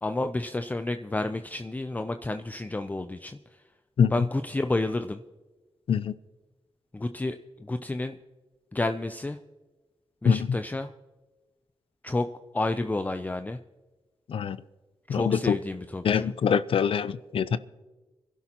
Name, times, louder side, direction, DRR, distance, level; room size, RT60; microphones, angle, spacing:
voice 1, 0.0-3.4 4.1-5.2 6.9-8.2 8.7-9.4 10.2-10.9 12.0-12.3 12.5-13.6 15.1-16.3, left 2 dB, 15° left, 8 dB, 0.5 m, -30 dB
voice 2, 15.1-15.6 16.0-17.6, left 7 dB, 70° left, 16 dB, 0.5 m, -24 dB
25.0 x 11.5 x 2.9 m, 1.2 s
wide cardioid pair, 90°, 10 cm